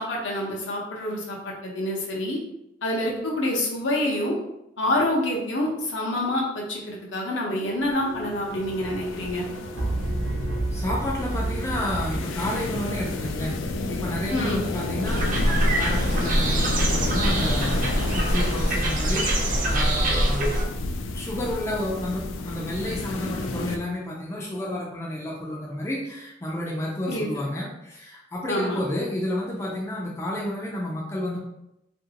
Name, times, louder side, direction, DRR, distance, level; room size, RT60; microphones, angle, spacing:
voice 1, 0.0-2.4 2.8-4.3 4.8-9.4 14.3-14.6 27.1-27.3 28.5-28.8, left 1 dB, 70° left, -2 dB, 0.7 m, -27 dB
sound 1, 7.8-23.8, left 3 dB, 85° left, 0.3 m, -32 dB
sound 2, 8.0-13.4, right 1 dB, 80° right, 0.9 m, -31 dB
voice 2, 10.7-20.5 21.1-31.4, left 1 dB, 15° left, -3 dB, 0.4 m, -31 dB
sound 3, 15.0-20.6, right 1 dB, 45° right, 0.5 m, -23 dB
2.8 x 2.6 x 2.8 m, 0.86 s
head